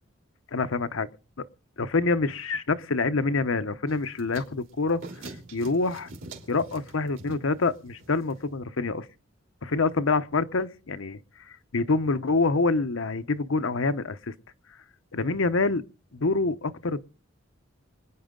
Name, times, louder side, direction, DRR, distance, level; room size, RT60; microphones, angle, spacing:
voice 1, 0.5-1.1 1.4-1.5 1.8-5.0 5.5-6.1 6.5-9.1 9.6-11.2 11.7-14.3 15.1-15.8 16.1-17.0, left 3 dB, 85° left, 0.9 m, -26 dB
sound 1, 3.9-8.6, right 2 dB, 75° right, 3.3 m, -45 dB
25.5 x 9.7 x 3.8 m
head